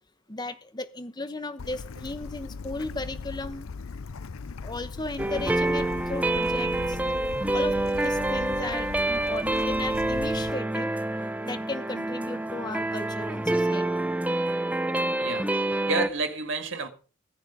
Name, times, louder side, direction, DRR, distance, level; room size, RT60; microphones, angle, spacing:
voice 1, 0.3-3.7 4.6-7.0 7.5-10.9 11.4-13.9, left 2 dB, 20° left, 1.0 m, -35 dB
Bird / Stream, 1.6-10.5, left 4 dB, 75° left, 0.6 m, -39 dB
sound 1, 5.2-16.1, right 2 dB, 5° right, 0.6 m, -27 dB
voice 2, 15.2-15.6 15.9-16.9, right 4 dB, 60° right, 2.0 m, -29 dB
16.5 x 10.5 x 5.1 m
head